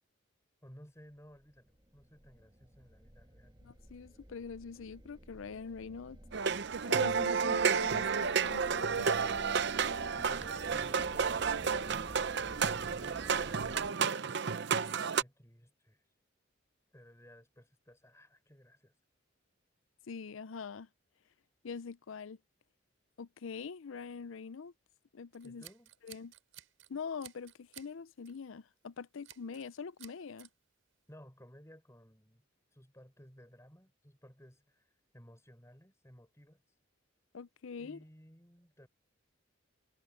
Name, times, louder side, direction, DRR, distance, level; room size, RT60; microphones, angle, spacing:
voice 1, 0.6-3.6 10.1-16.0 16.9-18.9 25.4-25.9 31.1-32.5 32.7-36.6 37.8-38.9, equal, 15° left, 6.4 m, -58 dB
sound 1, 1.3-13.9, equal, 20° right, 2.0 m, -52 dB
voice 2, 3.6-6.2 6.9-9.1 20.1-20.9 21.6-22.4 23.2-24.7 25.1-25.6 26.0-26.3 26.9-30.5 37.3-38.0, left 5 dB, 75° left, 0.5 m, -44 dB
sound 2, 6.3-15.2, right 6 dB, 55° right, 0.6 m, -31 dB
Scissors, 25.3-26.9 27.2-27.9 28.2-28.5 29.2-29.7 30.0-30.5, right 13 dB, 75° right, 5.2 m, -54 dB
head